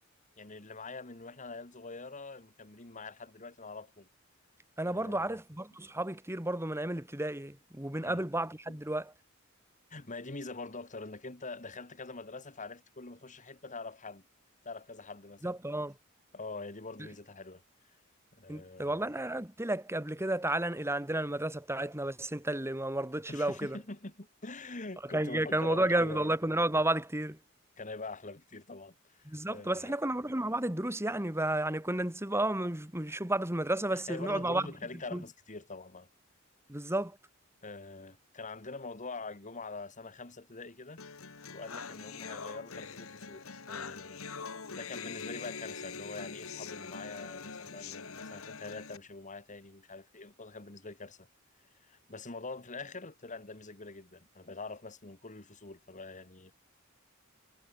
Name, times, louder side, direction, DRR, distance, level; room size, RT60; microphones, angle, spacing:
voice 1, 0.4-4.1 4.8-5.4 8.0-8.3 8.7-8.8 9.9-14.2 14.6-15.5 16.3-17.6 18.3-19.0 23.3-26.3 27.8-30.0 33.9-36.1 37.6-41.0 41.5-44.2 44.7-51.3 51.8-56.5, left 3 dB, 35° left, 2.1 m, -44 dB
voice 2, 4.8-9.1 15.4-15.9 18.5-23.8 25.1-27.4 29.3-34.7 35.1-35.2 36.7-37.1, right 1 dB, 10° right, 2.3 m, -32 dB
sound 1, 41.0-49.0, left 5 dB, 85° left, 1.7 m, -43 dB
head